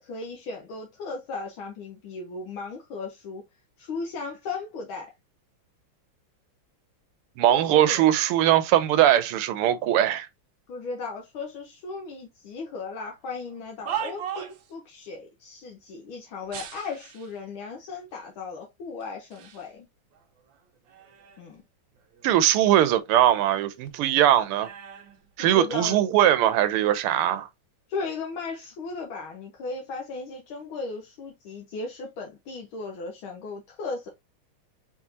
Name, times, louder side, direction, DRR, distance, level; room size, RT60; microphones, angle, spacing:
voice 1, 0.0-3.4 3.8-5.1 7.5-7.6 7.9-8.0 10.7-19.9 21.4-21.6 25.4-26.0 27.9-34.1, left 4 dB, 75° left, 1.6 m, -36 dB
voice 2, 7.4-10.3 22.2-24.7 25.4-27.5, right 12 dB, 90° right, 1.5 m, -21 dB
sound 1, 13.4-14.7 16.5-17.4 18.2-18.3 19.0-19.7 20.1-21.6 21.9-23.6 23.9-26.0 26.7-27.0, right 9 dB, 65° right, 1.4 m, -40 dB
4.4 x 3.6 x 2.6 m
omnidirectional pair, 2.4 m